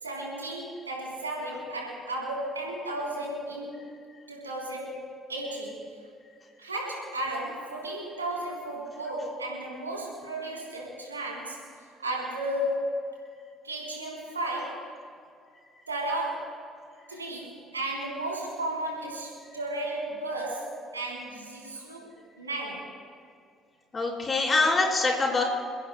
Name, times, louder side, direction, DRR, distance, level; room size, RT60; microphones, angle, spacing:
voice 1, 0.0-3.9 4.3-5.0 5.3-5.8 6.6-11.6 12.0-13.0 13.6-14.9 15.9-16.6 17.1-22.1 22.4-22.9, right 1 dB, 90° right, -3 dB, 3.7 m, -34 dB
voice 2, 23.9-25.4, left 3 dB, 30° left, -1 dB, 4.5 m, -24 dB
29.0 x 15.0 x 2.3 m, 2.3 s
figure-of-eight pair, 50°, 0 cm